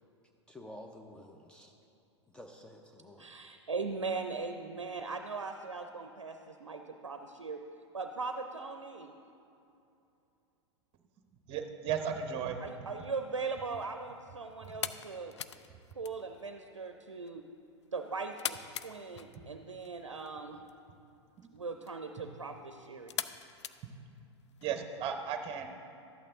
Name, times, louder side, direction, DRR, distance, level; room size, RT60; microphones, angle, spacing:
voice 1, 0.5-1.7 2.3-3.3, left 1 dB, 5° left, 2 dB, 0.6 m, -50 dB
voice 2, 3.2-7.6 7.9-9.1 12.6-15.4 16.0-17.4 17.9-20.6 21.5-23.1, right 4 dB, 85° right, 6 dB, 0.5 m, -39 dB
voice 3, 11.5-12.9 21.4-21.5 23.8-23.9 24.6-25.8, right 7 dB, 35° right, 7 dB, 0.8 m, -35 dB
sound 1, 13.3-24.7, left 9 dB, 70° left, 0.4 m, -45 dB
12.5 x 8.6 x 3.7 m, 2.7 s
figure-of-eight pair, 90°, 15 cm